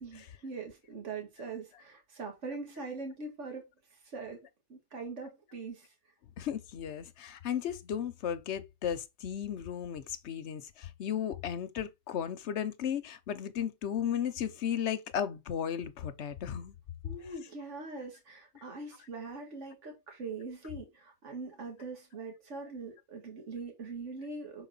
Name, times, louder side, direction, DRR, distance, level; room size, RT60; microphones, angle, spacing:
voice 1, 0.0-3.7 4.1-4.4 4.7-5.9 17.0-24.7, right 3 dB, 60° right, 2.2 m, -42 dB
voice 2, 6.4-16.7, left 9 dB, 60° left, 1.0 m, -35 dB
6.3 x 4.1 x 3.9 m
omnidirectional pair, 1.4 m